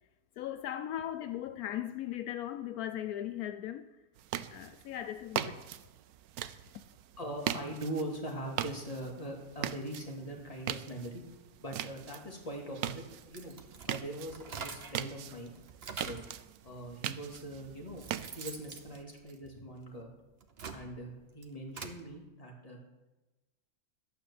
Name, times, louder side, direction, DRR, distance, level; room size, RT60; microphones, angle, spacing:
voice 1, 0.4-3.9 4.5-5.6 6.7-6.8, left 11 dB, 80° left, 1.1 m, -38 dB
sound 1, 4.2-19.0, right 11 dB, 80° right, 1.1 m, -41 dB
voice 2, 7.2-11.2 11.6-13.6 13.9-15.5 15.9-16.2 16.6-20.1 20.7-22.8, right 1 dB, 25° left, 2.2 m, -42 dB
sound 2, 13.2-15.1 15.5-16.3 17.2-17.3 17.7-19.9 20.3-22.0, right 5 dB, 45° right, 1.1 m, -45 dB
11.5 x 9.0 x 7.0 m
omnidirectional pair, 1.6 m